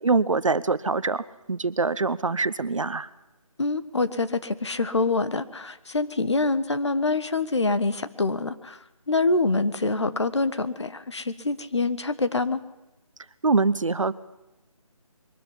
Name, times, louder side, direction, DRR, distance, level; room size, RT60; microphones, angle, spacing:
voice 1, 0.0-3.1 13.4-14.1, right 3 dB, 60° right, 17 dB, 0.9 m, -24 dB
voice 2, 3.6-8.8 9.1-12.6, left 3 dB, 50° left, 13 dB, 1.2 m, -25 dB
22.5 x 13.0 x 9.8 m, 1.0 s
figure-of-eight pair, 175°, 18 cm